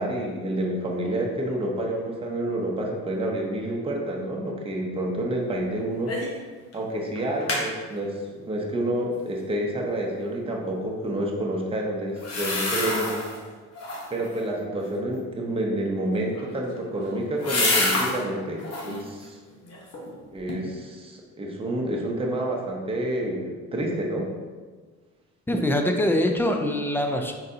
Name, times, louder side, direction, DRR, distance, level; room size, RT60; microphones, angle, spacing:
voice 1, 0.0-6.2 6.7-13.3 14.1-19.4 20.3-24.3, right 1 dB, 20° right, -1 dB, 0.7 m, -29 dB
sound 1, 6.1-6.4 6.7-6.8 7.2-7.7 12.2-13.4 13.7-14.3 16.2-18.2 18.6-19.0 19.5-20.1 20.5-20.6, left 2 dB, 55° left, 1.0 m, -27 dB
voice 2, 25.5-27.3, left 1 dB, 5° left, 4 dB, 0.4 m, -23 dB
3.9 x 3.9 x 2.7 m, 1.5 s
cardioid pair, 90°, 30 cm